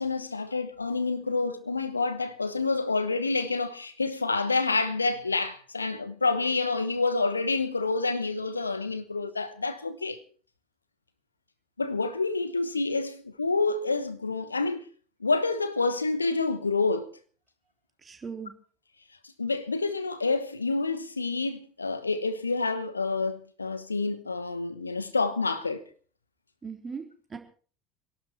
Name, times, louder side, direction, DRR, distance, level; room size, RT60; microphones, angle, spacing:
voice 1, 0.0-10.2 11.8-14.8 15.2-17.1 19.4-25.8, left 3 dB, 85° left, 1.1 m, -28 dB
voice 2, 18.0-18.5 26.6-27.4, right 5 dB, 25° right, 3.8 m, -39 dB
26.0 x 11.5 x 4.5 m
figure-of-eight pair, 65°, 0 cm